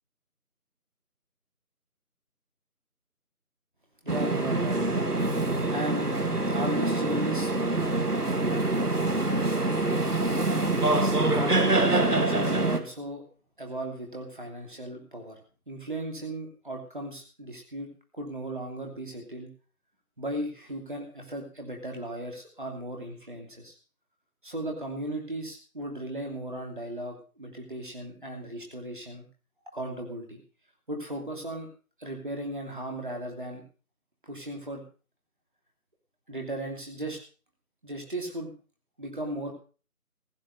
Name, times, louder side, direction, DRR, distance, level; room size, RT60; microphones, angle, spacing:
voice 1, 4.0-4.8 5.7-6.1 6.5-7.5 11.3-13.2 13.6-15.4 15.7-19.5 20.2-23.8 24.4-29.3 29.7-30.4 30.9-31.7 32.0-33.6 34.2-34.8 36.3-37.2 37.8-38.5 39.0-39.5, right 1 dB, 35° right, 2 dB, 2.9 m, -36 dB
sound 1, 4.1-12.8, right 2 dB, 85° right, 2.2 m, -25 dB
16.0 x 9.3 x 5.5 m, 0.37 s
figure-of-eight pair, 170°, 45 cm